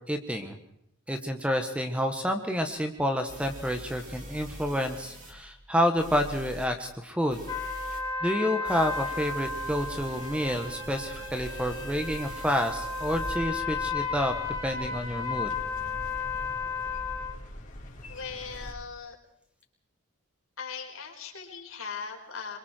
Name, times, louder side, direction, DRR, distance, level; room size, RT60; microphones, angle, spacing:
voice 1, 0.1-0.6 1.1-7.4 8.2-14.3 14.6-15.5, equal, 5° right, 6 dB, 1.5 m, -29 dB
sound 1, 2.6-2.7 3.3-5.3 6.0-6.7 7.3-8.0 8.6-13.3, equal, 35° right, 4.8 m, -44 dB
sound 2, 7.5-17.4, left 4 dB, 20° left, 3.1 m, -34 dB
sound 3, 9.3-18.7, equal, 40° left, 4.5 m, -43 dB
voice 2, 18.1-19.1 20.6-22.6, left 5 dB, 70° left, 1 dB, 4.8 m, -39 dB
26.5 x 23.0 x 4.6 m, 0.75 s
head